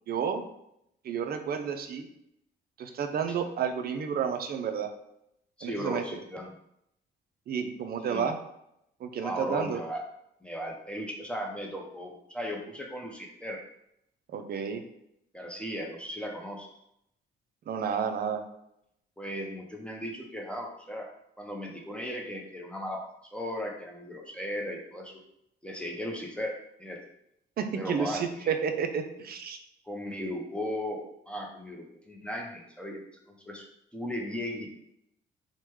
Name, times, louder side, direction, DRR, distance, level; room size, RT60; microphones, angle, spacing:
voice 1, 0.1-0.5 1.0-2.1 2.8-4.9 5.6-6.0 7.5-8.4 9.0-9.8 14.3-14.8 17.7-18.4 27.6-29.6, right 7 dB, 50° right, 6 dB, 0.4 m, -31 dB
voice 2, 5.6-6.5 8.0-8.3 9.2-10.0 10.4-13.6 15.3-16.7 19.2-21.1 21.4-25.2 25.6-27.0 27.7-28.5 29.9-33.0 33.3-33.7 33.9-34.7, equal, 5° left, 0 dB, 0.5 m, -36 dB
3.2 x 2.1 x 3.0 m, 0.78 s
cardioid pair, 90°, 20 cm